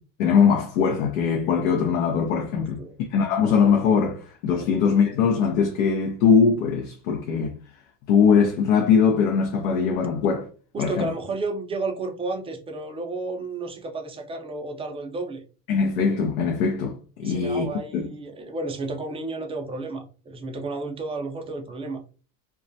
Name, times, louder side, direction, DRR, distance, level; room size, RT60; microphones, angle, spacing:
voice 1, 0.2-2.8 3.1-7.5 8.1-10.5 10.8-11.1 15.7-17.7 17.9-18.1, left 6 dB, 90° left, 0.6 m, -21 dB
voice 2, 2.6-2.9 10.7-15.4 17.2-22.0, right 3 dB, 15° right, 0.4 m, -32 dB
2.3 x 2.0 x 2.6 m
supercardioid pair, 120°, 39 cm